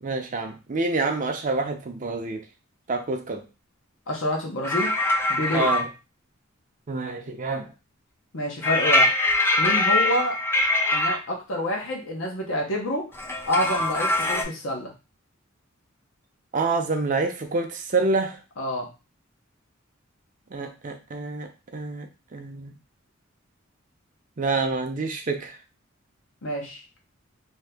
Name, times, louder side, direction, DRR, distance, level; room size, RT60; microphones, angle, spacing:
voice 1, 0.0-2.4 2.9-3.4 5.5-5.9 6.9-7.7 16.5-18.4 20.5-22.7 24.4-25.6, right 3 dB, 40° right, 5 dB, 0.5 m, -27 dB
voice 2, 4.1-4.9 5.3-5.7 8.3-9.2 9.6-10.4 10.9-13.1 13.5-14.9 18.6-18.9 26.4-27.0, left 1 dB, 70° left, 0 dB, 0.9 m, -28 dB
sound 1, 4.6-5.9 8.6-11.2 13.1-14.4, left 2 dB, 10° left, 0.4 m, -22 dB
2.8 x 2.7 x 3.4 m, 0.30 s
head